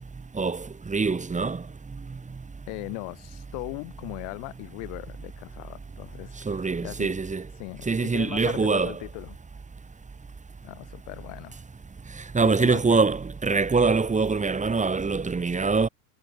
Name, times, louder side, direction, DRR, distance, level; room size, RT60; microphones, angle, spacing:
voice 1, 0.3-1.6 6.5-7.5 7.9-9.0 12.3-15.9, right 4 dB, 15° right, 3.9 m, -24 dB
voice 2, 2.7-6.3 6.8-7.2 7.6-9.4 10.6-11.6 12.4-13.0, left 38 dB, 65° left, 4.6 m, -38 dB
supercardioid pair, 125°, 48 cm